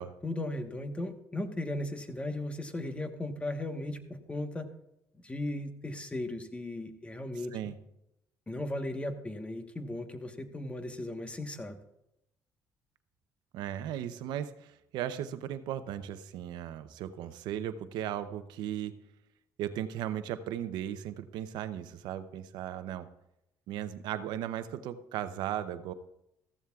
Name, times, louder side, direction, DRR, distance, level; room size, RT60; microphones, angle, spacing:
voice 1, 0.2-4.7 5.1-7.6 8.5-11.8, left 1 dB, 15° left, 7 dB, 1.2 m, -36 dB
voice 2, 13.5-18.9 19.6-23.1 23.7-25.9, right 11 dB, 85° right, 11 dB, 0.6 m, -36 dB
14.5 x 14.0 x 2.4 m, 0.84 s
cardioid pair, 95°, 7 cm